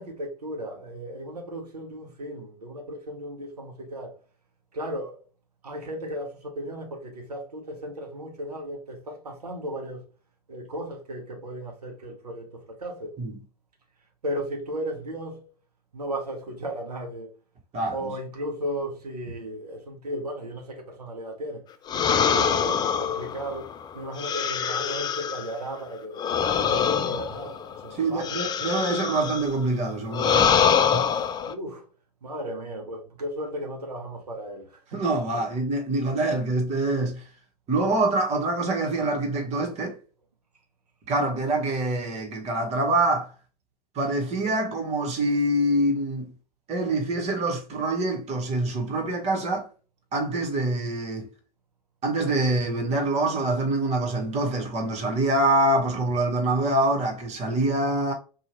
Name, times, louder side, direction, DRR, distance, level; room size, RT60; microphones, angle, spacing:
voice 1, 0.0-4.1 4.7-5.2 5.6-10.0 10.5-13.1 14.2-15.5 15.9-17.3 17.9-21.6 21.9-23.7 23.9-26.3 26.6-28.6 31.5-31.9 32.2-35.0 35.3-35.4, equal, 90° right, 0.7 m, -35 dB
voice 2, 17.7-18.1 27.9-31.1 34.9-37.2 37.7-40.0 41.1-43.3 43.9-46.3 46.7-49.7 50.1-51.3 52.0-58.1, right 2 dB, 35° right, 1.1 m, -25 dB
sound 1, 21.9-25.5 26.2-29.5 30.1-31.5, left 7 dB, 20° left, 0.3 m, -24 dB
2.8 x 2.4 x 2.9 m
hypercardioid pair, 90°, 20 cm